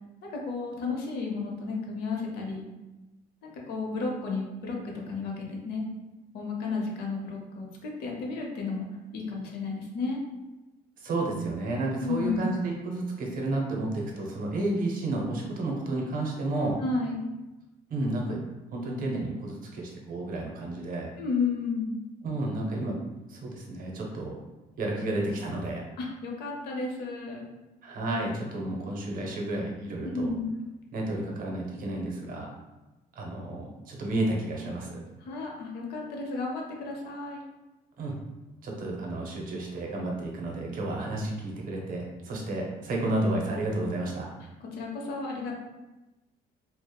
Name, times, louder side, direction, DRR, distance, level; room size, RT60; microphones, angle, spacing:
voice 1, 0.3-2.6 3.4-4.8 5.1-5.9 6.3-8.9 9.1-10.2 11.9-12.5 16.8-17.2 21.2-22.0 26.0-27.5 30.0-30.5 35.2-37.4 44.6-45.6, left 4 dB, 70° left, -1 dB, 0.6 m, -32 dB
voice 2, 11.0-16.8 17.9-18.4 18.7-21.1 22.2-23.0 23.3-24.3 24.8-25.8 27.8-30.3 30.9-32.6 33.2-35.0 38.0-38.2 38.6-44.3, right 2 dB, 55° right, -1 dB, 0.6 m, -31 dB
2.8 x 2.0 x 2.2 m, 1.1 s
cardioid pair, 110°, 17 cm